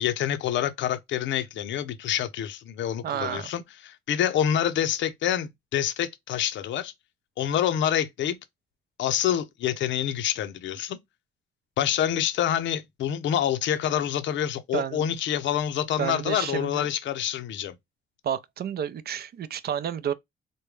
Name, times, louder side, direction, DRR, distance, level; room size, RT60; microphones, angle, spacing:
voice 1, 0.0-6.9 7.4-8.4 9.0-11.0 11.8-17.7, left 10 dB, 70° left, 0.6 m, -27 dB
voice 2, 3.0-3.5 14.7-15.0 16.0-16.9 18.2-20.1, right 9 dB, 50° right, 0.5 m, -30 dB
3.4 x 2.2 x 3.2 m
cardioid pair, 90°, 20 cm